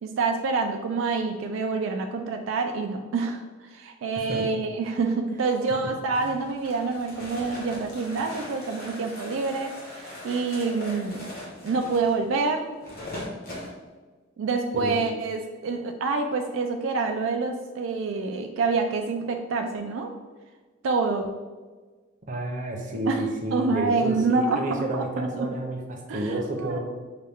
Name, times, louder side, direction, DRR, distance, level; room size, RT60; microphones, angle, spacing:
voice 1, 0.0-11.3 11.6-12.7 14.4-20.1 20.8-21.3 23.1-23.2 23.5-24.6 24.9-25.5 26.1-26.8, right 4 dB, 80° right, 4 dB, 0.3 m, -27 dB
voice 2, 4.2-4.5 6.2-6.3 14.7-15.0 22.3-26.8, right 2 dB, 40° right, 1 dB, 0.7 m, -30 dB
sound 1, 6.1-13.7, left 1 dB, 45° left, 1.3 m, -40 dB
5.5 x 2.3 x 3.5 m, 1.4 s
head